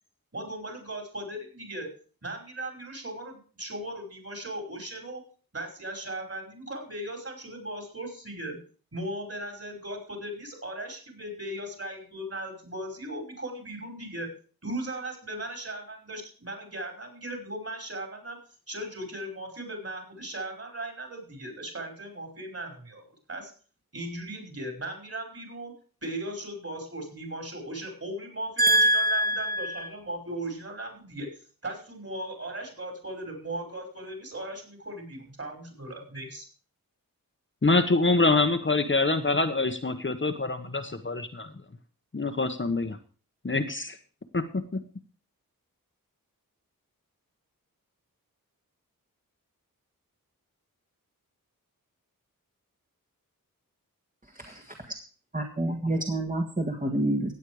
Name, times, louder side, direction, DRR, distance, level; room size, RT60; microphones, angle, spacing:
voice 1, 0.3-1.9 2.2-5.2 5.5-8.6 8.9-14.3 14.6-18.4 18.7-23.0 23.3-23.5 23.9-25.7 26.0-31.3 31.6-36.5, right 1 dB, 45° right, 2 dB, 5.4 m, -37 dB
voice 2, 28.6-29.7 54.4-54.6 55.3-57.3, right 1 dB, 25° right, 1 dB, 1.8 m, -25 dB
voice 3, 37.6-41.5 42.1-43.0 43.4-44.0 44.3-44.8, left 3 dB, 35° left, 6 dB, 1.2 m, -25 dB
16.5 x 8.6 x 4.9 m, 0.40 s
wide cardioid pair, 70°, 35 cm